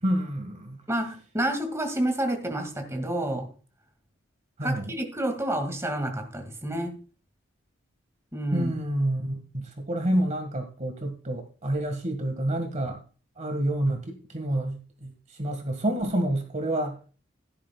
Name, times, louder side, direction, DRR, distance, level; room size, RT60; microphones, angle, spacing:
voice 1, 0.0-0.8 4.6-4.9 8.5-13.0 13.4-15.1 15.4-17.0, right 1 dB, 35° right, 5 dB, 1.8 m, -28 dB
voice 2, 0.9-3.5 4.6-7.0 8.3-8.7, right 1 dB, 15° right, 4 dB, 2.2 m, -29 dB
15.5 x 11.5 x 2.3 m, 0.36 s
head